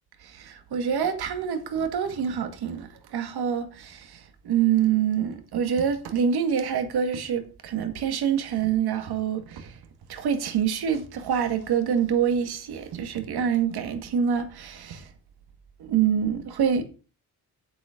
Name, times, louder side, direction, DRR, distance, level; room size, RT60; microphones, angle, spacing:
voice 1, 0.3-4.2 4.4-9.7 10.1-15.0 15.8-16.8, right 8 dB, 90° right, 2.1 m, -26 dB
8.6 x 8.4 x 5.1 m
wide cardioid pair, 140°, 37 cm